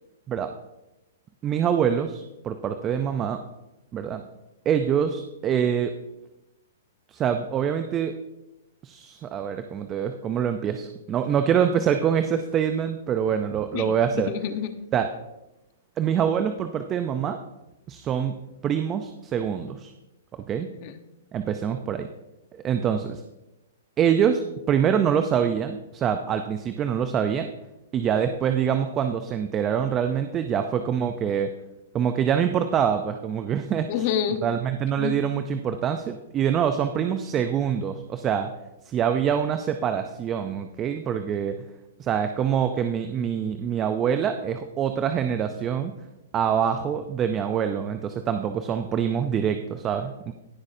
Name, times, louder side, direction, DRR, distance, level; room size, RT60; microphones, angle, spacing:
voice 1, 1.4-3.4 3.9-4.2 4.7-5.9 7.1-8.1 8.8-14.3 14.9-15.1 16.0-17.4 17.9-18.4 18.6-19.9 20.5-20.7 21.3-22.1 22.6-23.2 24.0-24.4 24.7-27.5 27.9-31.5 31.9-33.9 34.4-38.5 38.9-41.6 42.0-45.9 46.3-50.3, right 8 dB, 25° right, 8 dB, 0.5 m, -25 dB
voice 2, 13.7-14.7 20.6-21.0 33.9-34.4 35.0-35.2, left 9 dB, 45° left, 8 dB, 1.0 m, -29 dB
17.0 x 6.4 x 2.7 m, 0.97 s
hypercardioid pair, 140°, 0 cm